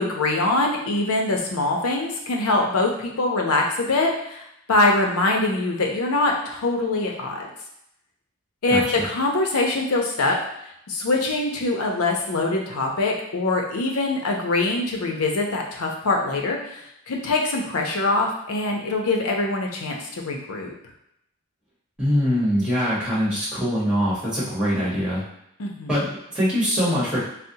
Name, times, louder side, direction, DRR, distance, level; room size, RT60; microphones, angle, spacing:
voice 1, 0.0-7.5 8.6-10.4 10.9-20.7 25.6-26.0, left 2 dB, 90° left, 1 dB, 0.6 m, -23 dB
voice 2, 8.7-9.0 22.0-25.2 25.9-27.2, equal, 5° right, -9 dB, 1.1 m, -23 dB
4.0 x 2.0 x 2.7 m, 0.79 s
head